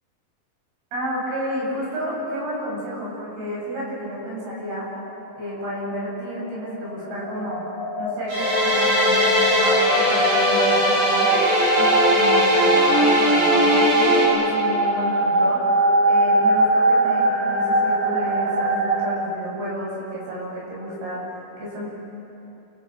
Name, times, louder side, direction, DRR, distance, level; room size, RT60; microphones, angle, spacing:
voice 1, 0.9-5.0 5.4-11.3 11.8-15.8 16.1-21.9, equal, 85° right, -5 dB, 9.8 m, -31 dB
sound 1, 5.1-19.2, right 2 dB, 45° right, 3.4 m, -23 dB
sound 2, 8.3-14.3, equal, 60° right, 9.6 m, -19 dB
29.0 x 29.0 x 6.3 m, 2.9 s
omnidirectional pair, 4.4 m